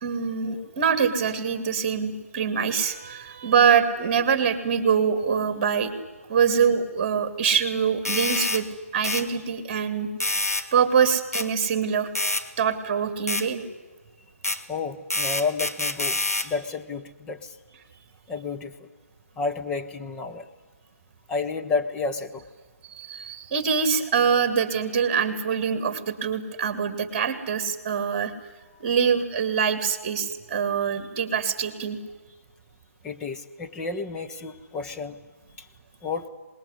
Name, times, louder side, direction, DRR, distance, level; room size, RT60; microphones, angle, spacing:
voice 1, 0.0-5.9 6.3-8.7 8.9-10.1 10.7-12.1 12.6-13.6 22.9-28.3 28.8-32.0, right 7 dB, 30° right, 12 dB, 2.3 m, -24 dB
sound 1, 8.1-8.6 9.0-9.3 10.2-10.7 11.3-11.5 12.2-12.4 13.3-13.5 14.4-14.6 15.1-16.5, left 2 dB, 80° left, 2.3 m, -26 dB
voice 2, 14.7-17.6 18.3-18.9 19.4-20.5 21.3-22.4 33.0-35.2 35.6-35.7 36.0-36.3, left 4 dB, 10° left, 4 dB, 1.0 m, -31 dB
25.5 x 20.5 x 9.9 m, 1.4 s
figure-of-eight pair, 140°, 8 cm